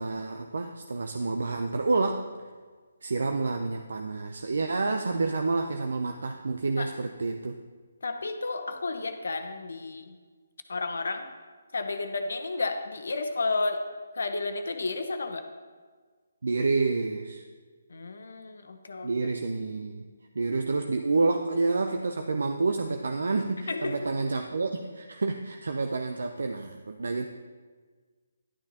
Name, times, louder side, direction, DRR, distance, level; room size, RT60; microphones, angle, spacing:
voice 1, 0.0-2.3 3.0-7.6 16.4-17.4 19.0-20.0 20.4-27.3, right 3 dB, 75° right, 5 dB, 0.6 m, -29 dB
voice 2, 8.0-10.2 10.7-11.3 11.7-13.8 14.2-15.5 17.9-19.1 23.7-24.0, left 3 dB, 70° left, 7 dB, 0.9 m, -32 dB
11.0 x 9.4 x 2.9 m, 1.5 s
hypercardioid pair, 155°, 0 cm